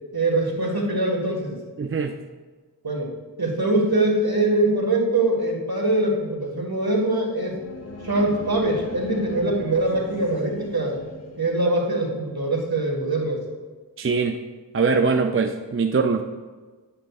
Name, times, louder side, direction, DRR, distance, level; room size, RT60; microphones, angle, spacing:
voice 1, 0.1-1.6 2.8-3.1 3.4-7.5 8.0-11.0 11.4-13.4, right 2 dB, 60° right, -1 dB, 1.6 m, -23 dB
voice 2, 1.8-2.2 14.0-14.4 14.7-16.2, right 4 dB, 35° right, 5 dB, 0.4 m, -22 dB
sound 1, 7.3-11.9, left 3 dB, 35° left, 0.7 m, -40 dB
9.3 x 7.6 x 2.4 m, 1.3 s
wide cardioid pair, 40°, 42 cm